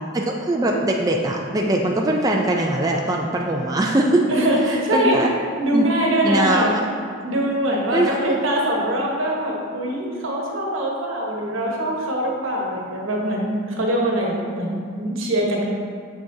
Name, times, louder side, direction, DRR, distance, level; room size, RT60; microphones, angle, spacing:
voice 1, 0.1-4.2 4.9-5.3 5.7-5.8 6.2-6.7 7.9-8.3, right 1 dB, 20° right, 0 dB, 0.4 m, -21 dB
voice 2, 4.3-5.2 5.6-6.7 7.2-15.7, right 1 dB, 80° right, -2 dB, 1.2 m, -23 dB
7.1 x 6.2 x 2.7 m, 2.1 s
head